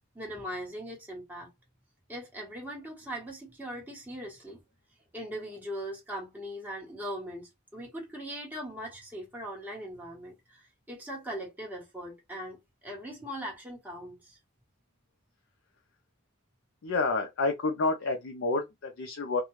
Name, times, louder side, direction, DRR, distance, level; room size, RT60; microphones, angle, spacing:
voice 1, 0.1-1.5 2.1-4.6 5.1-14.4, equal, 10° right, 1.2 m, -40 dB
voice 2, 16.8-19.4, left 3 dB, 60° left, 0.5 m, -29 dB
2.4 x 2.2 x 3.1 m
head